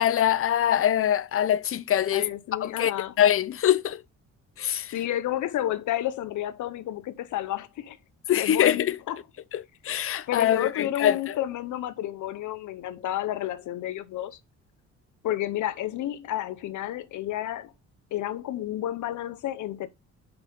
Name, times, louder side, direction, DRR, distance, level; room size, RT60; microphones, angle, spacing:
voice 1, 0.0-2.3 2.6-2.9 3.2-4.0 4.6-5.0 8.3-9.0 9.5-11.4, left 10 dB, 45° left, 0.6 m, -23 dB
voice 2, 2.1-3.1 4.9-8.0 8.3-9.2 10.3-14.4 15.2-17.7 18.1-19.9, left 12 dB, 75° left, 0.9 m, -31 dB
5.9 x 5.7 x 5.3 m
cardioid pair, 90°, 30 cm